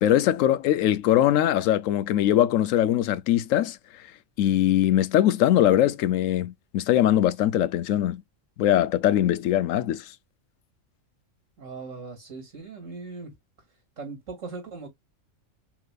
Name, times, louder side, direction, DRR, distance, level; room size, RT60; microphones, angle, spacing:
voice 1, 0.0-3.8 4.4-8.2 8.6-10.0, left 12 dB, 85° left, 1.0 m, -21 dB
voice 2, 11.6-13.4 14.0-14.9, right 4 dB, 75° right, 2.7 m, -39 dB
5.9 x 2.7 x 2.3 m
omnidirectional pair, 1.3 m